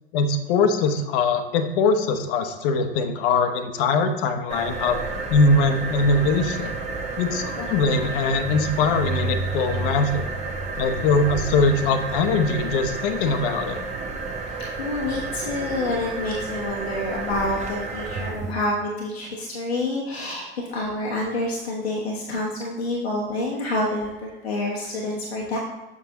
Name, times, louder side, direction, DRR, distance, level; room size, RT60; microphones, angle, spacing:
voice 1, 0.1-5.0 5.3-6.8 7.2-10.3 10.8-13.8, left 3 dB, 60° left, 8 dB, 0.8 m, -22 dB
sound 1, 4.5-18.5, right 3 dB, 20° right, 1.0 m, -30 dB
voice 2, 14.8-25.6, left 2 dB, 85° left, -3 dB, 1.0 m, -28 dB
7.1 x 5.9 x 2.9 m, 1.1 s
figure-of-eight pair, 70°, 31 cm